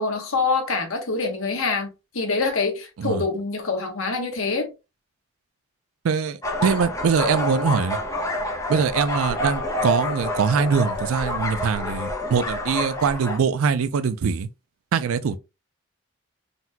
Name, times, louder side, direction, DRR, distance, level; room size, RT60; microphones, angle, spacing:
voice 1, 0.0-4.7, left 4 dB, 75° left, 1.0 m, -25 dB
voice 2, 6.0-8.0 8.7-14.5 14.9-15.4, right 6 dB, 85° right, 0.4 m, -23 dB
sound 1, 6.4-13.4, left 1 dB, 15° left, 0.5 m, -28 dB
4.0 x 2.2 x 2.7 m
head